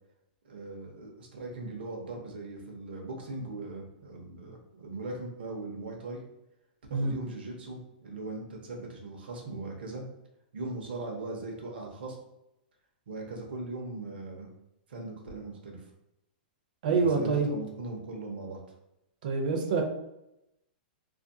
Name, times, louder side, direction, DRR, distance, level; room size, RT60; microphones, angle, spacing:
voice 1, 0.4-6.2 6.9-10.0 10.5-12.2 13.1-14.5 14.9-15.8 16.9-18.6, right 2 dB, 85° right, 0 dB, 0.8 m, -39 dB
voice 2, 16.8-17.5 19.2-19.8, right 4 dB, 55° right, 3 dB, 0.6 m, -26 dB
2.5 x 2.5 x 2.6 m, 0.87 s
supercardioid pair, 165°, 5 cm